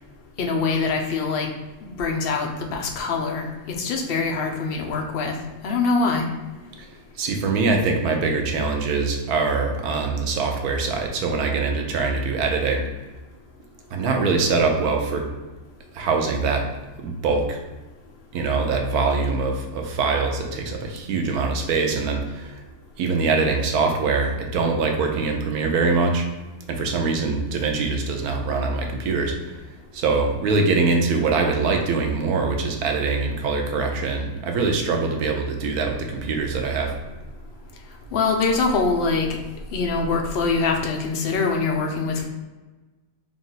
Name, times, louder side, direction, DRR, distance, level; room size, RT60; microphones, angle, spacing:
voice 1, 0.4-1.5 1.8-3.5 3.8-5.3 5.6-6.3 38.1-39.3 39.7-42.3, left 4 dB, 60° left, 2 dB, 0.6 m, -23 dB
voice 2, 7.2-12.8 13.9-15.3 15.9-16.7 17.0-17.6 18.3-22.6 23.0-26.3 26.7-29.6 29.9-36.9, right 4 dB, 85° right, 3 dB, 1.2 m, -23 dB
3.7 x 2.5 x 3.9 m, 1.2 s
omnidirectional pair, 1.6 m